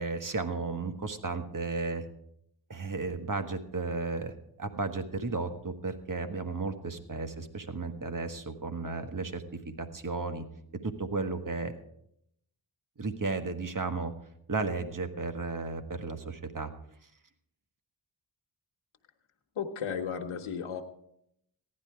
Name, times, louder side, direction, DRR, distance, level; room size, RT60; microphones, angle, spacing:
voice 1, 0.0-2.1 2.7-9.4 9.8-10.4 10.8-11.8 13.0-14.1 14.5-16.7, right 3 dB, 40° right, 8 dB, 1.5 m, -34 dB
voice 2, 19.5-20.8, left 7 dB, 85° left, 4 dB, 1.1 m, -34 dB
15.0 x 11.0 x 4.7 m, 0.74 s
cardioid pair, 45°, 48 cm